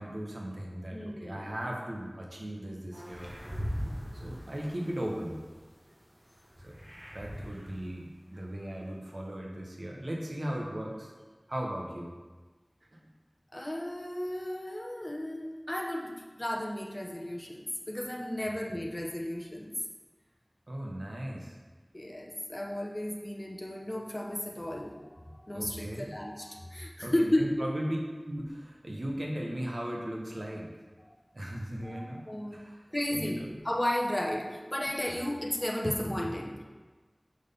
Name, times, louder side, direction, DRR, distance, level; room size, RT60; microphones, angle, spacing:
voice 1, 0.0-3.4 4.2-5.4 6.6-6.8 7.1-11.1 11.5-12.1 20.7-21.6 25.5-26.1 27.0-28.0 28.2-30.7 31.3-32.2 32.5-32.8 33.1-33.6 35.1-35.2, right 1 dB, 80° right, -2 dB, 1.1 m, -37 dB
voice 2, 0.9-1.6 13.5-19.7 21.9-27.5 31.8-32.6 32.9-36.6, left 1 dB, 35° left, -1 dB, 0.8 m, -34 dB
sound 1, 2.9-5.6 6.1-7.9, equal, 20° right, 1.1 m, -40 dB
6.3 x 5.5 x 3.6 m, 1.3 s
wide cardioid pair, 40°, 0 cm